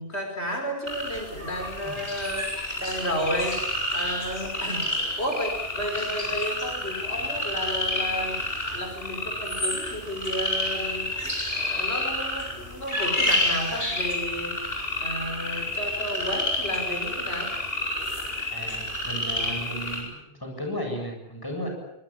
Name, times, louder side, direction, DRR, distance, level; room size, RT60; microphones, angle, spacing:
voice 1, 0.0-3.6 3.9-8.4 8.7-14.5 15.0-17.5, equal, 85° left, 4 dB, 5.9 m, -32 dB
sound 1, 0.9-20.0, left 1 dB, 65° left, 8.4 m, -29 dB
voice 2, 18.5-21.7, equal, 20° left, 2 dB, 8.0 m, -34 dB
25.5 x 21.0 x 9.0 m, 0.80 s
omnidirectional pair, 1.1 m